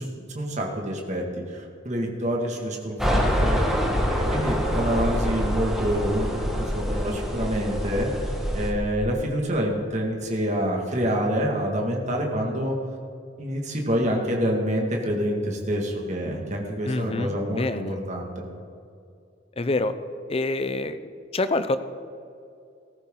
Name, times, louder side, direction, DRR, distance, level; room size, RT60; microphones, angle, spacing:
voice 1, 0.0-12.8 13.4-18.4, equal, 40° right, 0 dB, 2.0 m, -27 dB
sound 1, 3.0-8.7, equal, ahead, 1.5 m, -25 dB
voice 2, 16.9-18.0 19.6-19.9 20.3-21.8, left 2 dB, 30° left, 11 dB, 0.6 m, -26 dB
16.5 x 14.0 x 3.9 m, 2.5 s
head